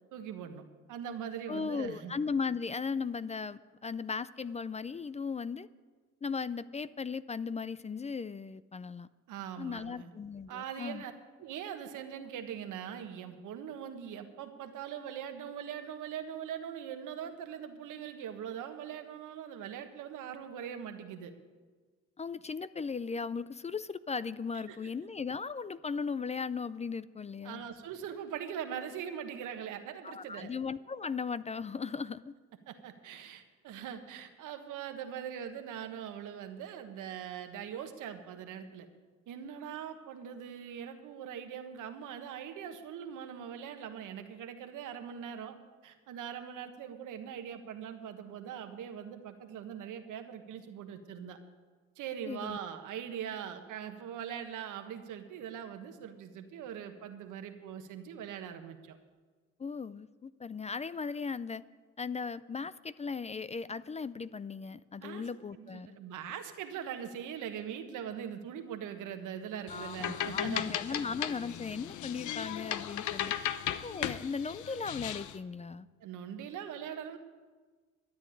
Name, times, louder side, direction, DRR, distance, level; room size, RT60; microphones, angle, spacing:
voice 1, 0.1-0.6 0.9-2.1 9.3-10.1 10.5-11.1 11.4-21.3 24.7-24.9 27.4-30.5 32.7-38.9 39.3-45.6 45.8-51.4 52.0-59.0 65.0-71.1 73.3-73.6 76.0-77.2, right 8 dB, 85° right, 7 dB, 1.4 m, -42 dB
voice 2, 1.5-5.7 6.2-9.1 9.6-11.0 22.2-27.7 30.0-32.3 52.3-52.6 59.6-61.6 62.0-66.0 69.7-73.3 73.7-75.9, left 5 dB, 25° left, 17 dB, 0.4 m, -37 dB
sound 1, 69.7-75.4, left 11 dB, 75° left, 0.8 m, -36 dB
13.0 x 8.4 x 9.9 m, 1.4 s
cardioid pair, 90°, 30 cm